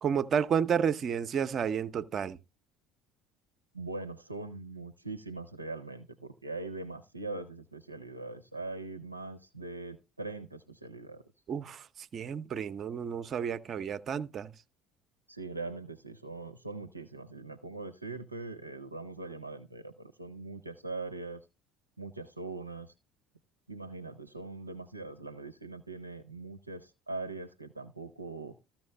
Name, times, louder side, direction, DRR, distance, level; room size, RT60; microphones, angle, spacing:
voice 1, 0.0-2.4 11.5-11.8 12.1-14.5, right 7 dB, 40° right, 0.6 m, -31 dB
voice 2, 3.7-11.2 15.3-21.4 22.0-22.9 23.7-28.6, right 3 dB, 90° right, 0.6 m, -41 dB
14.0 x 5.9 x 3.3 m
figure-of-eight pair, 60°, 0 cm